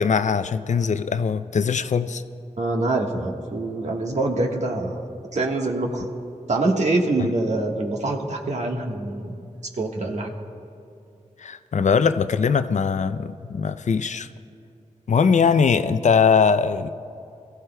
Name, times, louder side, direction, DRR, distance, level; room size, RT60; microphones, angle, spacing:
voice 1, 0.0-2.2 7.2-7.3 11.4-14.3 15.1-16.9, left 6 dB, 70° left, 11 dB, 0.5 m, -21 dB
voice 2, 2.6-5.0 5.3-6.0 6.5-9.4 9.8-10.3, right 2 dB, 65° right, 1 dB, 1.4 m, -25 dB
22.5 x 14.5 x 2.2 m, 2.5 s
wide cardioid pair, 70°, 13 cm